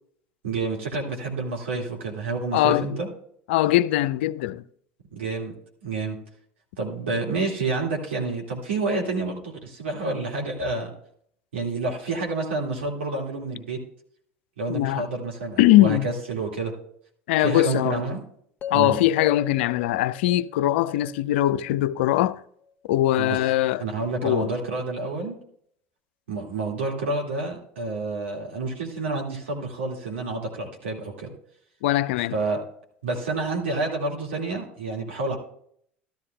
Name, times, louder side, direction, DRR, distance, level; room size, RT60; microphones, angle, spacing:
voice 1, 0.4-3.1 5.1-5.5 5.8-6.2 6.8-10.9 11.5-13.8 14.6-16.7 17.4-18.2 18.7-19.0 23.2-23.4 23.8-25.4 26.3-31.3 32.3-32.6 33.0-35.4, right 3 dB, 85° right, 1.9 m, -29 dB
voice 2, 2.5-2.9 3.5-4.6 14.7-15.1 15.6-16.1 17.3-18.0 18.7-22.4 22.9-23.8 24.2-24.5 31.8-32.3, left 15 dB, 75° left, 0.4 m, -21 dB
sound 1, 18.6-22.7, left 7 dB, 30° left, 1.0 m, -40 dB
13.0 x 12.0 x 2.2 m
hypercardioid pair, 75°, 6 cm